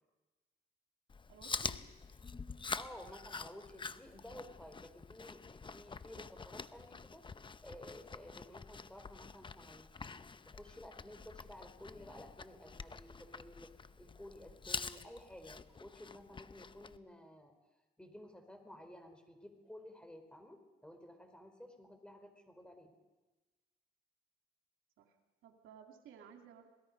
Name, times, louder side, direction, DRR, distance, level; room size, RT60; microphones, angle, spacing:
Chewing mastication, 1.1-17.0, left 4 dB, 25° left, 0.8 m, -46 dB
voice 1, 1.3-1.8 25.0-25.2 25.4-26.7, right 7 dB, 85° right, 4 dB, 2.7 m, -56 dB
voice 2, 2.7-5.4 5.7-7.3 7.6-9.9 10.4-13.7 14.0-17.5 18.0-22.9, left 1 dB, 5° left, 5 dB, 4.3 m, -53 dB
27.0 x 19.5 x 5.4 m, 1.2 s
cardioid pair, 90°, 20 cm